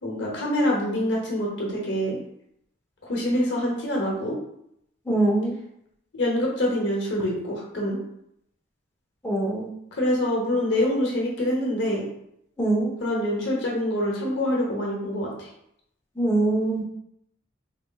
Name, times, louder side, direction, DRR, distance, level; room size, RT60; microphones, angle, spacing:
voice 1, 0.0-2.2 3.0-4.3 6.2-8.0 9.9-12.0 13.0-15.5, left 1 dB, 65° left, -2 dB, 0.9 m, -25 dB
voice 2, 5.1-5.5 9.2-9.7 12.6-12.9 16.2-16.8, right 2 dB, 10° left, -5 dB, 0.8 m, -23 dB
4.2 x 3.1 x 2.3 m, 0.75 s
head